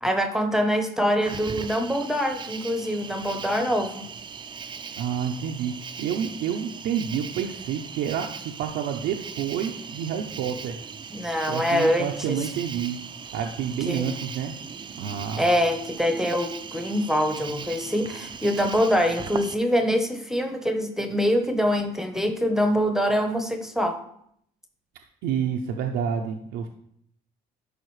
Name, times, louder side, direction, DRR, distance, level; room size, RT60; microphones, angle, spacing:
voice 1, 0.0-4.1 11.1-12.4 13.9-14.1 15.4-24.0, equal, 5° right, 6 dB, 0.8 m, -24 dB
Cricket, 1.2-19.5, right 6 dB, 25° right, 0.4 m, -39 dB
voice 2, 5.0-5.7 6.0-10.8 11.5-13.0 13.3-14.5 15.0-15.5 25.2-26.7, right 8 dB, 85° right, 3 dB, 0.6 m, -29 dB
11.0 x 5.0 x 3.2 m, 0.71 s
cardioid pair, 110°, 17 cm